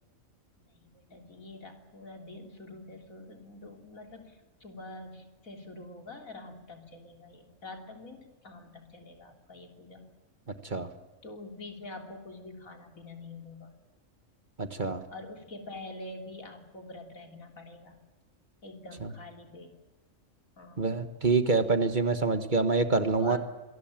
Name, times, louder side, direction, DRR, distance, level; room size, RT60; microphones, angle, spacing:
voice 1, 0.6-10.1 11.2-13.8 15.1-18.0 18.6-19.8 20.6-21.0 23.2-23.4, left 2 dB, 85° left, 4 dB, 3.8 m, -46 dB
voice 2, 14.6-15.0 19.0-19.1 20.8-23.4, right 4 dB, 35° right, 9 dB, 1.6 m, -26 dB
26.0 x 20.0 x 9.0 m, 1.1 s
omnidirectional pair, 1.4 m